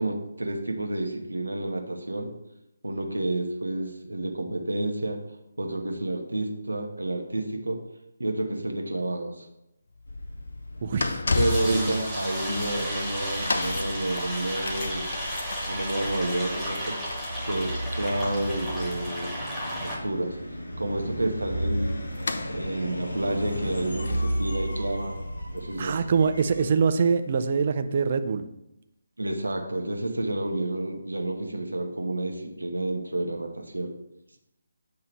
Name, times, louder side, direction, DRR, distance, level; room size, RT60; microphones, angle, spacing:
voice 1, 0.0-2.3 2.8-5.2 5.6-7.8 8.2-9.5 11.4-15.1 15.7-17.0 17.4-19.3 19.8-20.4 20.8-22.0 22.5-25.2 25.5-26.0 29.2-33.9, right 1 dB, 80° right, 3 dB, 0.9 m, -30 dB
sound 1, 9.9-26.9 27.5-27.6, left 3 dB, 60° left, 0.5 m, -35 dB
sound 2, 10.1-26.6, equal, 75° left, 1.1 m, -35 dB
voice 2, 10.8-11.2 11.6-12.0 25.8-28.5, right 5 dB, 40° right, 9 dB, 0.4 m, -24 dB
sound 3, 11.3-20.0, equal, 5° left, 1.6 m, -33 dB
7.5 x 2.8 x 4.5 m, 0.86 s
figure-of-eight pair, 150°, 0 cm